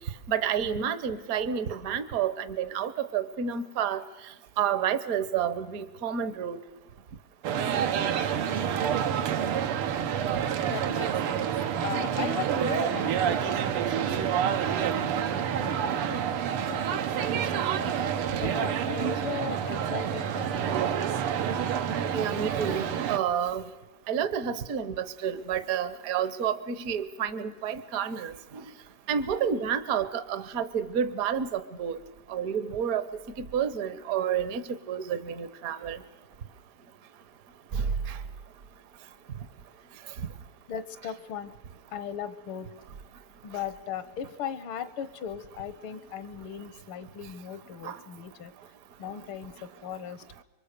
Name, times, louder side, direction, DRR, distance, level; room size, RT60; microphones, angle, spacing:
voice 1, 0.3-4.0 4.6-6.6 22.1-23.6 24.1-28.3 29.1-32.0 32.3-33.1 33.4-34.6 34.9-36.0 37.7-38.2 47.8-47.9, right 8 dB, 50° right, 13 dB, 1.2 m, -29 dB
sound 1, 7.4-23.2, right 8 dB, 80° right, 1.9 m, -28 dB
voice 2, 10.7-11.5 11.8-14.5 14.8-16.2 16.5-18.0 18.4-21.1 40.7-41.5 41.9-42.7 43.4-48.5 49.0-50.4, left 8 dB, 75° left, 14 dB, 1.8 m, -38 dB
26.0 x 23.5 x 6.7 m, 1.1 s
omnidirectional pair, 2.4 m